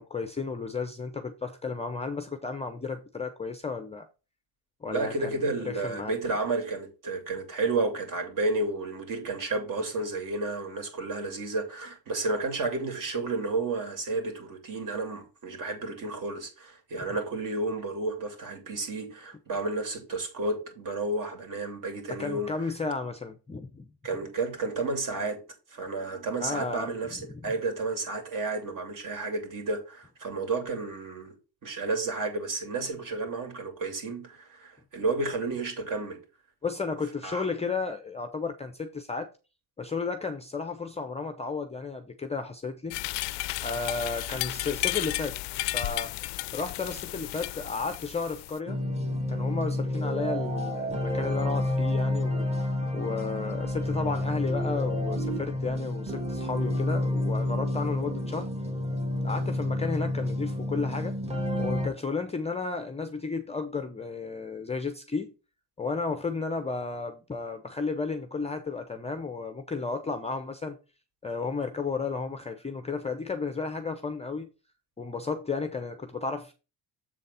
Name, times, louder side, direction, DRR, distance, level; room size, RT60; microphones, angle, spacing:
voice 1, 0.0-4.1 4.8-6.1 22.1-23.9 26.4-27.5 36.6-39.3 39.8-43.0 43.6-45.4 45.7-46.1 46.5-48.8 49.3-58.5 59.2-61.1 61.6-65.3 65.8-70.8 71.2-74.5 75.0-76.5, left 4 dB, 15° left, 0.6 m, -33 dB
voice 2, 4.9-22.5 24.0-25.4 25.7-31.3 31.6-36.2 37.2-37.5, right 3 dB, 45° right, 3.0 m, -31 dB
sound 1, 42.9-48.6, left 19 dB, 70° left, 0.5 m, -33 dB
sound 2, 48.7-61.9, left 1 dB, 15° right, 1.4 m, -29 dB
7.6 x 3.9 x 5.5 m
cardioid pair, 155°, 44 cm